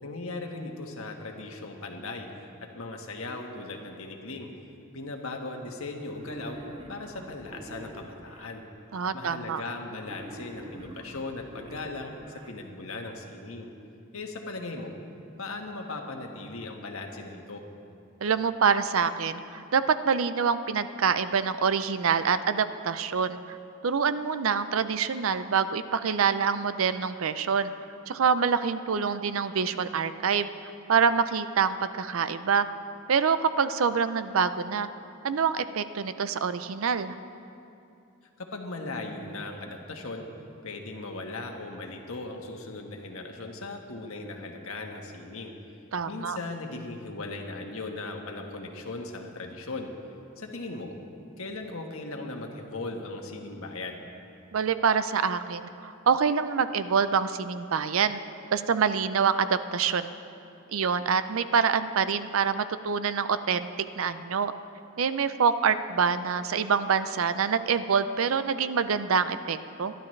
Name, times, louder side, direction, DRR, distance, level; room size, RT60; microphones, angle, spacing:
voice 1, 0.0-4.5 4.9-6.6 6.9-8.6 9.1-13.7 14.1-14.9 15.4-17.6 38.4-40.3 40.6-45.5 46.1-49.9 50.4-51.0 51.4-54.0, left 2 dB, 80° left, 2 dB, 1.4 m, -38 dB
Wild animals, 6.0-8.5 10.0-12.5, right 1 dB, 25° right, 0.8 m, -46 dB
voice 2, 8.9-9.6 18.2-23.6 23.8-27.7 28.1-30.5 30.9-32.7 33.1-34.9 35.2-37.2 45.9-46.4 54.5-58.2 58.5-60.1 60.7-63.7 64.0-64.5 65.0-69.9, right 6 dB, 75° right, 12 dB, 0.5 m, -26 dB
21.0 x 12.0 x 3.3 m, 2.6 s
head